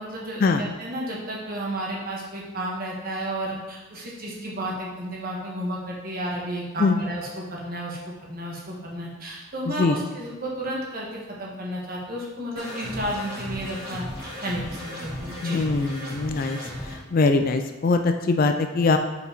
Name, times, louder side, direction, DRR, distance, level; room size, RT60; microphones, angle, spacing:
voice 1, 0.0-15.6, right 1 dB, 40° right, -3 dB, 1.4 m, -32 dB
sound 1, 12.6-16.9, left 1 dB, 25° left, 2.3 m, -35 dB
voice 2, 15.4-16.6 17.1-19.0, left 3 dB, 40° left, 6 dB, 0.3 m, -22 dB
5.1 x 4.8 x 5.0 m, 1.1 s
head